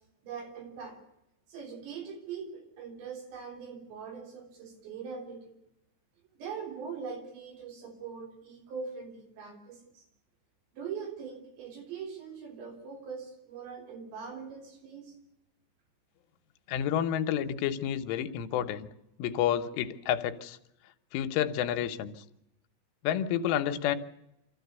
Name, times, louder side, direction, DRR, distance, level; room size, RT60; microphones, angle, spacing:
voice 1, 0.2-1.0 1.5-5.6 6.4-10.0 10.7-15.2, right 6 dB, 65° right, 2 dB, 5.7 m, -42 dB
voice 2, 16.7-18.9 19.2-20.6 21.1-22.2 23.0-24.0, left 10 dB, 85° left, 8 dB, 3.5 m, -30 dB
25.5 x 14.5 x 8.2 m, 0.86 s
omnidirectional pair, 5.5 m